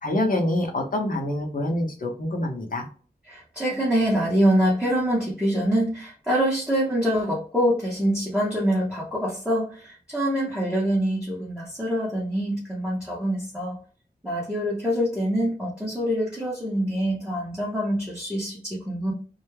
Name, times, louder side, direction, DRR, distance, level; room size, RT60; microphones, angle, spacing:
voice 1, 0.0-2.9, left 1 dB, 55° left, 2 dB, 0.7 m, -26 dB
voice 2, 3.3-13.8 14.2-19.1, equal, 5° right, -5 dB, 0.7 m, -25 dB
2.2 x 2.0 x 3.1 m, 0.41 s
wide cardioid pair, 90°, 17 cm